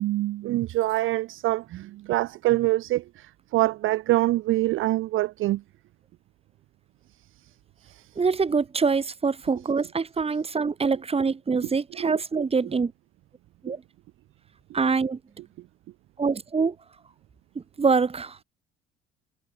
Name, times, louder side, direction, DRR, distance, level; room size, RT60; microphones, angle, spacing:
voice 1, 0.0-5.6 7.8-8.1 12.0-12.1 13.7-13.8, right 17 dB, 40° right, 0.6 m, -25 dB
voice 2, 8.1-12.9 13.6-13.8 14.7-15.2 16.2-16.8 17.5-18.4, right 5 dB, 20° right, 1.4 m, -25 dB
figure-of-eight pair, 55°, 32 cm